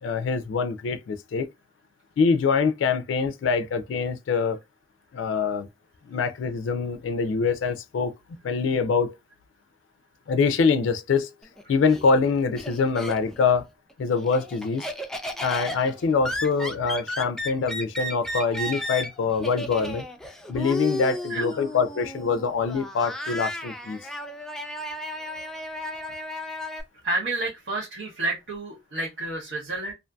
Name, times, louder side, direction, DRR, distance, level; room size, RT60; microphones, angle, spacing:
voice 1, 0.0-1.5 2.2-4.6 5.1-5.7 6.1-9.1 10.3-11.3 11.7-13.7 14.0-14.9 15.4-20.0 20.5-24.0, left 5 dB, 85° left, 0.3 m, -24 dB
Laughter, 11.4-13.5 13.9-26.8, left 1 dB, 5° left, 0.3 m, -34 dB
voice 2, 21.3-21.7 27.0-29.9, right 2 dB, 70° right, 0.9 m, -30 dB
2.5 x 2.5 x 2.2 m
head